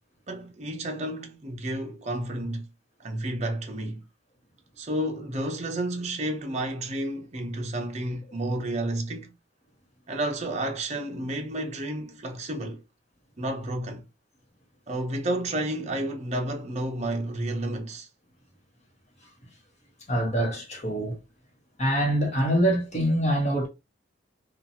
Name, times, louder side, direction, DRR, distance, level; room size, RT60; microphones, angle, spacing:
voice 1, 0.3-2.7 3.0-4.0 4.8-9.3 10.1-12.8 13.4-14.0 14.9-18.1, right 1 dB, 35° right, 0.6 m, -31 dB
voice 2, 20.1-21.2 21.8-23.7, right 1 dB, 35° left, 1.0 m, -24 dB
2.8 x 2.3 x 2.6 m
head